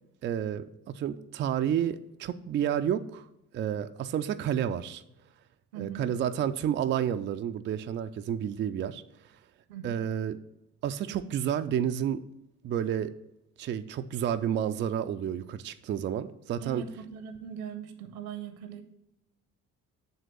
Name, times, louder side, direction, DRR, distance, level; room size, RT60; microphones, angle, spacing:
voice 1, 0.2-3.3 3.5-5.0 5.7-9.0 9.8-10.4 10.8-12.2 12.6-13.1 13.6-16.8, right 9 dB, 25° right, 9 dB, 0.4 m, -30 dB
voice 2, 5.7-6.1 9.7-10.1 16.6-18.8, right 7 dB, 70° right, 9 dB, 0.9 m, -40 dB
7.9 x 3.7 x 6.4 m, 0.87 s
figure-of-eight pair, 40°, 45 cm